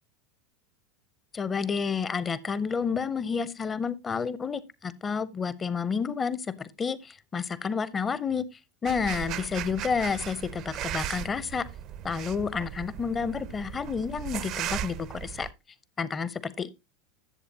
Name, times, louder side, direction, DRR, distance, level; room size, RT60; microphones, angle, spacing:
voice 1, 1.3-8.4 8.8-11.6 12.0-15.5 16.0-16.7, left 5 dB, 20° left, 0.7 m, -30 dB
sound 1, 8.9-15.5, right 12 dB, 45° right, 0.5 m, -37 dB
11.0 x 7.6 x 2.8 m
figure-of-eight pair, 80°, 0 cm